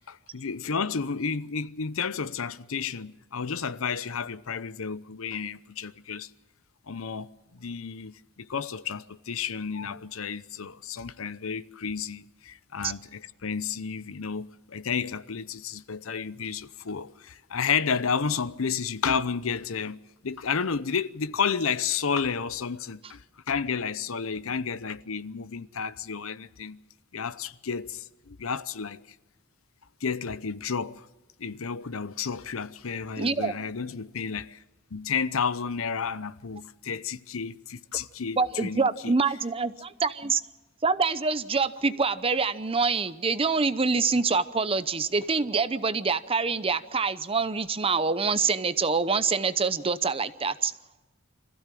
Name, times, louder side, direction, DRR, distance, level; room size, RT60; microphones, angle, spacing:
voice 1, 0.1-6.3 6.9-23.2 23.5-26.8 27.1-29.0 30.0-31.1 31.4-34.6 34.9-39.2, left 6 dB, 70° left, 0.7 m, -31 dB
voice 2, 33.2-33.5 38.4-40.4 40.8-50.7, right 4 dB, 25° right, 0.8 m, -26 dB
25.5 x 15.5 x 7.6 m
head